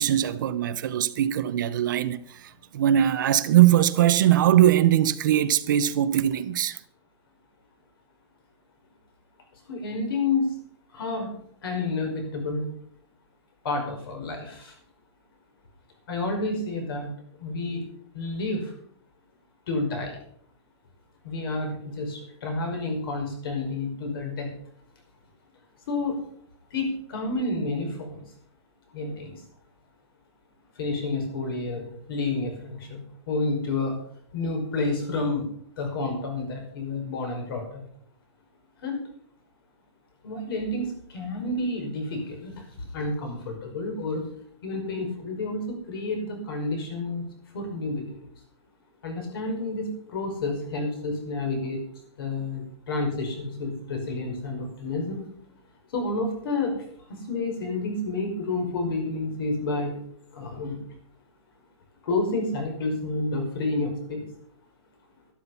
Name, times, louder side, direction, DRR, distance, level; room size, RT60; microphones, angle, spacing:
voice 1, 0.0-6.8, right 12 dB, 45° right, 0.7 m, -21 dB
voice 2, 9.7-10.5 10.9-12.7 13.6-14.8 16.1-17.1 17.4-17.8 18.1-18.7 19.7-20.2 21.2-24.5 25.9-26.2 26.7-28.2 28.9-29.4 30.8-34.0 34.3-35.5 35.8-37.8 38.8-39.0 40.2-44.3 44.6-47.2 47.5-48.3 49.0-51.8 52.2-55.3 55.9-56.8 57.1-60.0 60.3-60.8 62.0-64.3, left 2 dB, 50° left, 5.5 m, -30 dB
12.5 x 12.5 x 5.7 m
hypercardioid pair, 180°, 15 cm